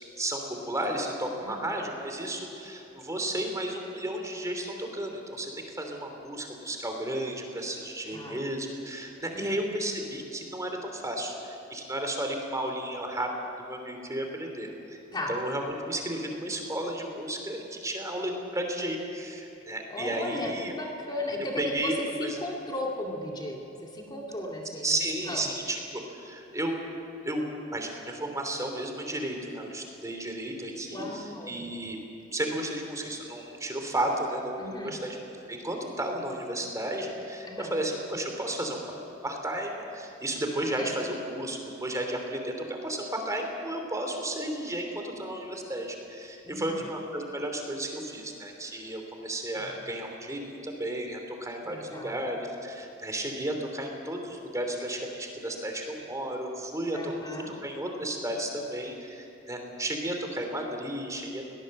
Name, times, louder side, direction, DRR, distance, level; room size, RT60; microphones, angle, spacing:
voice 1, 0.2-13.3 13.6-15.0 15.3-20.7 21.6-22.0 22.2-22.4 24.8-26.9 27.2-32.0 32.3-38.8 39.2-57.1 57.6-61.4, right 1 dB, 15° right, 3 dB, 3.1 m, -33 dB
voice 2, 8.1-8.5 9.3-9.7 15.1-15.3 19.9-25.6 30.9-31.6 34.6-35.0 37.5-37.7 40.7-41.0 46.4-46.8 49.6-49.7 51.6-52.2 56.9-57.5, left 1 dB, 20° left, -1 dB, 2.3 m, -36 dB
22.5 x 18.5 x 7.7 m, 2.9 s
head